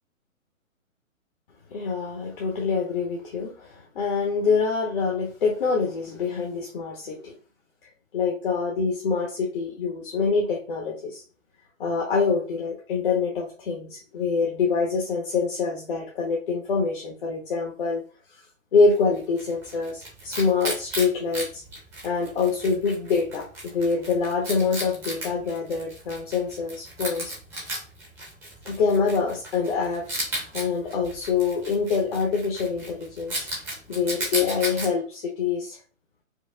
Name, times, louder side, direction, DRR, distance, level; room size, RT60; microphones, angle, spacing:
voice 1, 1.7-7.3 8.1-11.2 11.8-18.0 18.7-21.6 22.0-27.3 28.6-30.2 30.5-33.5 33.9-35.8, left 5 dB, 40° left, -2 dB, 0.8 m, -25 dB
Wild animals, 18.9-34.9, right 1 dB, 5° right, 0.7 m, -36 dB
4.6 x 2.2 x 2.2 m, 0.38 s
figure-of-eight pair, 130°, 41 cm